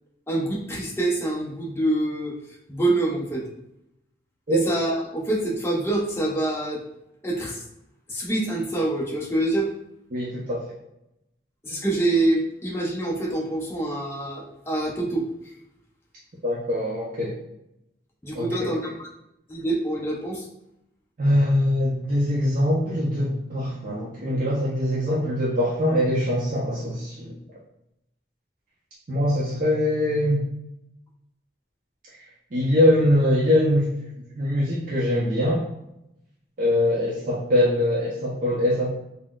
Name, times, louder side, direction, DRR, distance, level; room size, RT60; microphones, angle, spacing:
voice 1, 0.3-2.4 2.7-3.5 4.5-6.8 7.2-7.6 8.1-9.7 11.6-15.3 18.2-19.1 19.5-20.4, right 2 dB, 15° left, -2 dB, 0.5 m, -25 dB
voice 2, 10.1-10.7 16.4-17.3 18.3-18.8 21.2-27.4 29.1-30.4 32.5-34.1 34.4-35.7 36.6-38.9, left 1 dB, 45° right, -6 dB, 0.5 m, -23 dB
3.8 x 2.0 x 2.2 m, 0.84 s
head